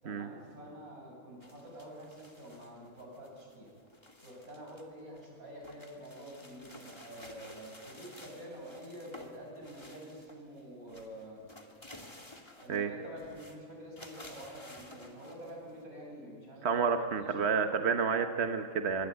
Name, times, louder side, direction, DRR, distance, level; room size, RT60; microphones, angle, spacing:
voice 1, 0.0-3.7 4.2-11.4 12.6-17.7, equal, 85° right, -2 dB, 8.7 m, -48 dB
sound 1, 1.4-4.8 5.2-10.6 10.9-12.9 13.2-13.6 14.0-15.8, left 1 dB, 20° left, 2.3 m, -53 dB
voice 2, 16.6-19.1, right 5 dB, 50° right, 6 dB, 1.3 m, -30 dB
25.5 x 22.5 x 8.4 m, 2.1 s
omnidirectional pair, 1.5 m